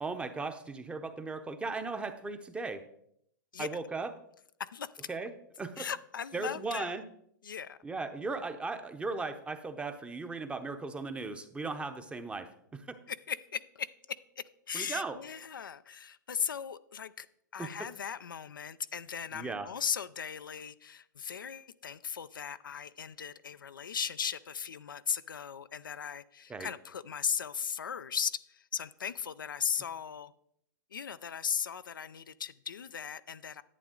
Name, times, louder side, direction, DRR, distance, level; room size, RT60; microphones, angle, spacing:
voice 1, 0.0-2.8 3.6-4.1 5.1-5.3 5.6-5.8 6.3-7.0 7.8-12.9 14.7-15.2 17.6-17.7 19.3-19.7 26.5-26.7, right 3 dB, 10° right, 9 dB, 0.8 m, -37 dB
voice 2, 4.6-5.1 5.8-7.0 7.4-7.8 13.1-17.3 17.5-30.3 30.9-33.6, left 7 dB, 90° left, 13 dB, 0.5 m, -37 dB
11.0 x 8.4 x 3.8 m, 0.71 s
hypercardioid pair, 120°, 11 cm